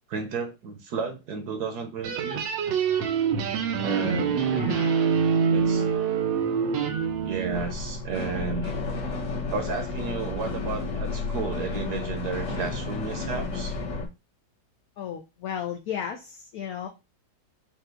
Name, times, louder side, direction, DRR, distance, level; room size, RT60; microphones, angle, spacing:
voice 1, 0.1-2.4 3.8-4.4 5.5-5.8 7.2-8.8 9.5-13.7, right 5 dB, 65° right, 7 dB, 1.2 m, -32 dB
sound 1, 2.0-7.7, right 6 dB, 85° right, 1.5 m, -25 dB
voice 2, 3.8-5.1 5.6-6.0 15.0-16.9, left 9 dB, 65° left, 4 dB, 0.9 m, -35 dB
sound 2, 7.5-14.0, left 4 dB, 45° left, 1.3 m, -32 dB
5.6 x 2.4 x 3.8 m, 0.25 s
omnidirectional pair, 2.0 m